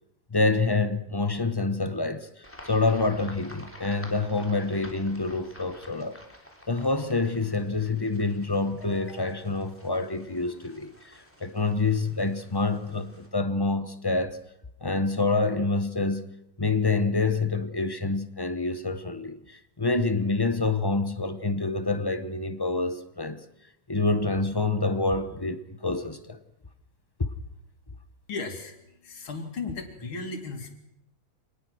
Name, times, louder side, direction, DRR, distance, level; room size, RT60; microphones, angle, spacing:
voice 1, 0.3-2.3 2.6-6.2 6.7-14.4 14.8-16.3 16.6-23.4 23.9-26.4 27.2-27.3, left 3 dB, 25° left, 0.5 m, -27 dB
sound 1, 2.4-13.3, equal, 5° left, 3.4 m, -50 dB
voice 2, 28.3-30.7, left 3 dB, 90° left, 3.5 m, -36 dB
26.0 x 19.5 x 6.3 m
omnidirectional pair, 2.2 m